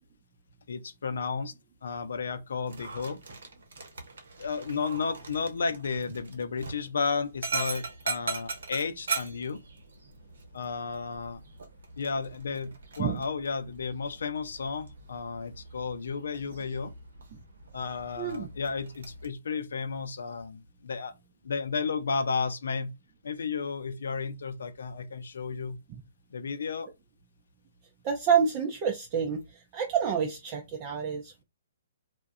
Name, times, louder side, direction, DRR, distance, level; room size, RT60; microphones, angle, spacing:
voice 1, 0.7-1.5 1.8-3.2 4.4-9.6 10.5-11.4 12.0-16.9 17.7-21.2 21.4-22.9 23.2-25.8 26.3-26.9, left 5 dB, 70° left, 0.4 m, -33 dB
Dog, 2.6-19.3, right 4 dB, 70° right, 0.8 m, -40 dB
voice 2, 18.2-18.5 28.0-29.4 29.7-31.4, right 7 dB, 30° right, 0.5 m, -28 dB
2.3 x 2.1 x 2.5 m
figure-of-eight pair, 130°, 0 cm